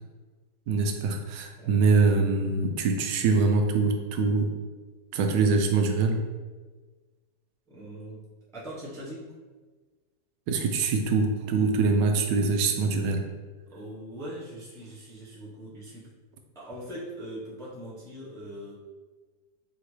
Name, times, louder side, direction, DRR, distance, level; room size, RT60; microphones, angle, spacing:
voice 1, 0.7-4.5 5.1-6.2 10.5-13.2, right 4 dB, 85° right, 4 dB, 1.2 m, -24 dB
voice 2, 7.7-9.3 13.7-16.1 16.5-18.7, equal, 5° left, -7 dB, 0.5 m, -41 dB
5.0 x 2.9 x 3.1 m, 1.3 s
omnidirectional pair, 1.8 m